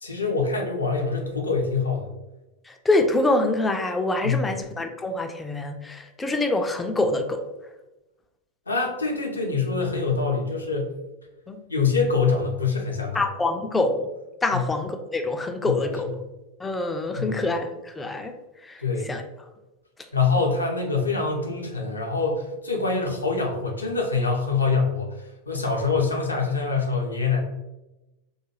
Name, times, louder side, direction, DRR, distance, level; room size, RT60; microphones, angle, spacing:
voice 1, 0.0-2.1 4.2-4.5 8.7-10.9 11.7-13.2 14.5-14.6 15.6-16.1 17.2-17.4 18.8-19.1 20.1-27.4, left 4 dB, 80° left, 1 dB, 0.5 m, -25 dB
voice 2, 2.6-7.4 11.5-11.6 13.1-14.1 14.4-16.1 16.6-18.3 18.6-19.2, left 2 dB, 10° left, 5 dB, 0.3 m, -25 dB
2.3 x 2.2 x 3.0 m, 0.99 s
figure-of-eight pair, 90°, 0 cm